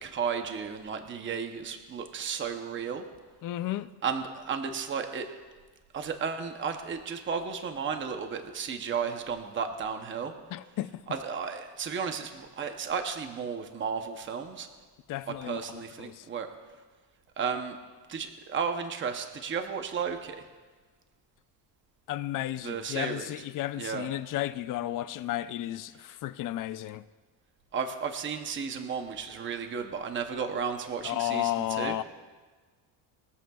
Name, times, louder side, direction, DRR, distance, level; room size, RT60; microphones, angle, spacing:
voice 1, 0.0-3.1 4.0-5.3 5.9-10.3 11.1-14.7 15.4-16.5 17.4-17.8 18.1-20.4 22.6-23.3 23.8-24.1 27.7-32.0, right 6 dB, 30° right, 0.8 m, -33 dB
voice 2, 3.4-3.9 10.5-10.9 15.1-16.3 22.1-27.0 31.0-32.0, left 14 dB, 50° left, 0.4 m, -33 dB
21.5 x 14.0 x 2.3 m
cardioid pair, 180°, 43 cm